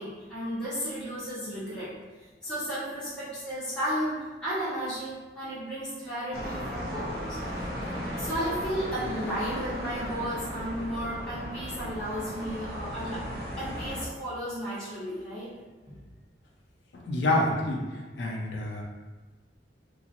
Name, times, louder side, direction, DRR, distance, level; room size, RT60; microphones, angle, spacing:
voice 1, 0.0-1.9 2.4-7.4 8.1-13.2 13.6-15.5 15.8-16.0, equal, 5° left, -13 dB, 1.1 m, -34 dB
sound 1, 6.3-14.1, equal, 60° right, 0.5 m, -36 dB
voice 2, 16.9-17.9 18.2-18.8, left 1 dB, 75° left, -1 dB, 0.5 m, -27 dB
2.9 x 2.4 x 2.6 m, 1.3 s
head